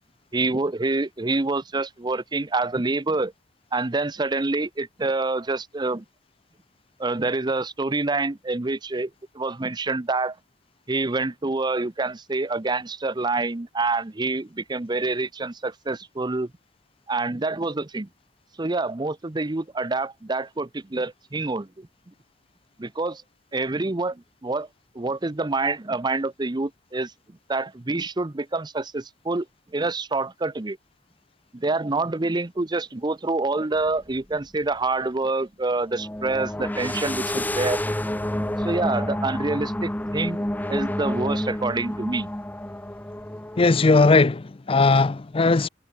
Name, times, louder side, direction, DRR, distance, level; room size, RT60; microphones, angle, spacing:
voice 1, 0.3-3.3 3.7-6.0 7.0-9.1 9.3-10.3 10.9-16.5 17.1-18.1 18.6-21.9 22.8-23.2 23.5-24.7 24.9-27.1 27.5-29.5 29.7-30.8 31.5-37.8 38.6-42.3, right 3 dB, 20° right, 0.7 m, -27 dB
sound 1, 33.8-33.9 35.9-44.2, left 1 dB, 10° left, 0.9 m, -29 dB
voice 2, 43.6-45.7, left 3 dB, 30° left, 0.5 m, -18 dB
head